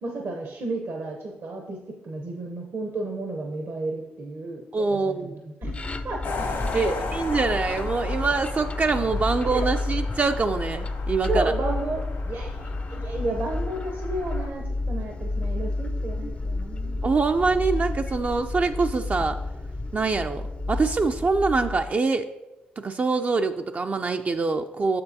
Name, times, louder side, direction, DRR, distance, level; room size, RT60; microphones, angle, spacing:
voice 1, 0.0-5.7 6.0-6.4 6.7-7.0 9.5-9.6 11.3-17.0, right 2 dB, 65° right, 2 dB, 0.8 m, -32 dB
voice 2, 4.7-5.4 6.7-11.5 17.0-19.4 19.9-20.4 20.7-22.3 22.8-25.0, right 4 dB, 40° right, 5 dB, 0.3 m, -24 dB
sound 1, 5.6-21.9, left 2 dB, 30° left, 0.4 m, -31 dB
sound 2, 6.2-14.5, left 4 dB, 80° left, 1.5 m, -36 dB
6.7 x 6.7 x 2.7 m, 1.0 s
supercardioid pair, 50°, 4 cm